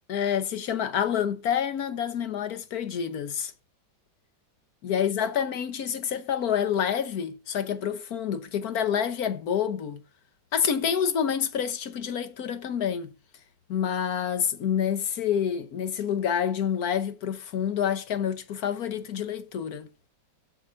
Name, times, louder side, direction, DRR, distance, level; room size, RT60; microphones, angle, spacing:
voice 1, 0.1-3.5 4.8-10.0 10.5-13.1 13.7-19.9, left 8 dB, 60° left, 1.3 m, -28 dB
7.5 x 6.2 x 5.7 m
omnidirectional pair, 2.1 m